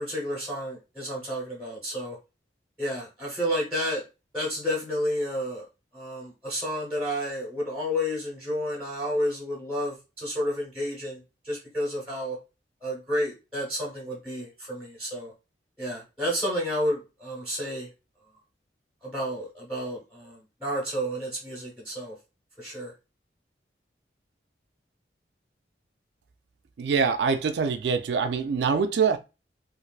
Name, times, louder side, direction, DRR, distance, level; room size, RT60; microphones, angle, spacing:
voice 1, 0.0-2.2 2.8-4.0 4.3-5.7 5.9-11.2 11.4-12.4 12.8-15.3 15.8-17.9 19.0-22.1 22.6-22.9, equal, 5° right, 1.0 m, -31 dB
voice 2, 26.8-29.2, right 5 dB, 70° right, 0.3 m, -24 dB
3.2 x 2.5 x 2.4 m
head